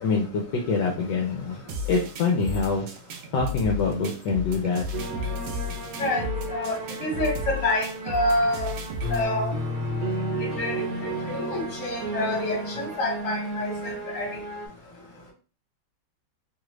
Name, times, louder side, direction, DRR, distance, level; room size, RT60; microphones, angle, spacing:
voice 1, 0.0-2.9 3.3-4.8, left 4 dB, 70° left, 0 dB, 1.2 m, -25 dB
sound 1, 1.7-9.2, left 3 dB, 70° right, 0.8 m, -34 dB
sound 2, 4.9-14.7, right 2 dB, 55° right, 1.1 m, -33 dB
voice 2, 6.5-8.7 9.1-9.5 10.4-14.3, left 1 dB, 45° left, -1 dB, 1.5 m, -28 dB
3.2 x 2.4 x 3.1 m, 0.36 s
omnidirectional pair, 2.2 m